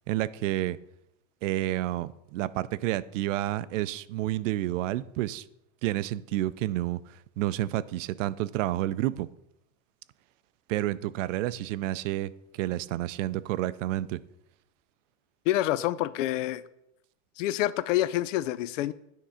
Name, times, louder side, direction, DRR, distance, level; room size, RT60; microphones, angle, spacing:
voice 1, 0.1-0.8 1.4-5.4 5.8-9.3 10.7-14.2, right 15 dB, 90° right, 16 dB, 0.5 m, -30 dB
voice 2, 15.5-16.6 17.4-18.9, left 14 dB, 85° left, 17 dB, 0.5 m, -27 dB
9.2 x 3.7 x 5.6 m, 0.82 s
supercardioid pair, 160°, 37 cm